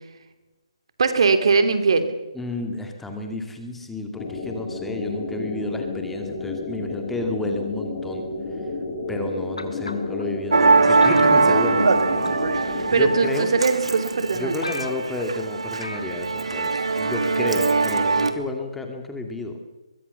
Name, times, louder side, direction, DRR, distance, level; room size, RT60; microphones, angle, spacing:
voice 1, 1.0-2.1 12.9-14.5, right 4 dB, 60° right, 9 dB, 2.8 m, -20 dB
voice 2, 2.3-8.2 9.1-12.4 12.6-13.5 14.3-19.6, left 2 dB, 5° left, 4 dB, 2.3 m, -31 dB
sound 1, 4.2-13.2, left 3 dB, 30° left, 4.0 m, -31 dB
sound 2, 9.6-10.2 11.0-12.0 12.2-12.5 13.4-13.5 14.0-14.1 14.3-14.4 14.6-15.3 15.8-16.1 16.4-16.5, left 3 dB, 85° left, 3.1 m, -35 dB
Musical instrument, 10.5-18.3, right 3 dB, 75° right, 2.7 m, -21 dB
23.0 x 23.0 x 6.9 m, 1.1 s
figure-of-eight pair, 150°, 3 cm